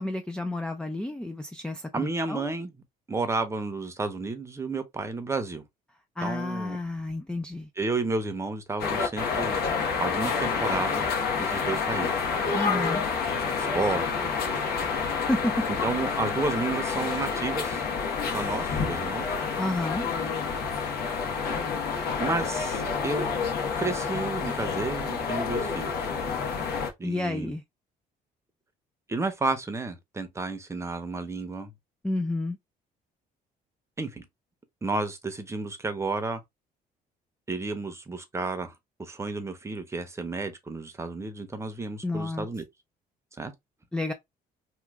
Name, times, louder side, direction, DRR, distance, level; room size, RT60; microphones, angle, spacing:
voice 1, 0.0-2.4 6.2-7.7 12.5-13.0 14.8-14.9 15.3-15.7 19.6-20.1 27.0-27.6 32.0-32.6 42.0-42.5 43.9-44.1, left 2 dB, 5° left, 0.4 m, -30 dB
voice 2, 1.9-2.7 3.1-5.6 6.2-6.8 7.8-9.6 10.0-12.1 12.7-12.8 13.6-14.3 15.8-17.8 18.3-19.3 22.2-23.5 23.8-26.1 27.0-27.5 29.1-31.7 34.0-34.3 34.8-36.4 37.5-38.7 39.0-42.6 43.4-43.5, right 3 dB, 15° right, 0.7 m, -31 dB
sound 1, 8.8-26.9, left 5 dB, 70° left, 1.0 m, -28 dB
3.1 x 2.2 x 3.4 m
cardioid pair, 110°, 17 cm